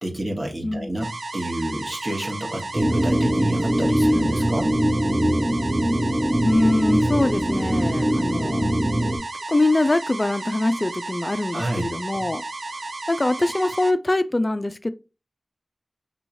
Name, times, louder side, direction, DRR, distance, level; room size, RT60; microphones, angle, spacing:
voice 1, 0.0-4.7 11.5-11.9, right 1 dB, 45° right, 1.4 m, -29 dB
sound 1, 1.0-13.9, right 2 dB, 75° right, 0.4 m, -34 dB
sound 2, 2.7-9.2, equal, 20° right, 0.7 m, -22 dB
voice 2, 6.4-8.8 9.5-12.4 13.1-14.9, left 2 dB, 35° left, 0.3 m, -23 dB
5.4 x 3.0 x 2.6 m
wide cardioid pair, 55°, 0 cm